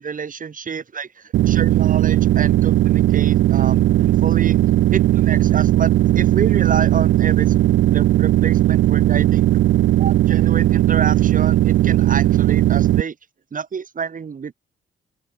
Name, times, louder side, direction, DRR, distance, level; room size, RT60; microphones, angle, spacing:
voice 1, 0.0-4.6 4.9-7.5 7.9-9.5 10.0-13.2 13.5-14.5, right 6 dB, 40° right, 5.8 m, -29 dB
sound 1, 1.3-13.0, right 14 dB, 70° right, 0.7 m, -17 dB
open air
cardioid pair, 90°, 20 cm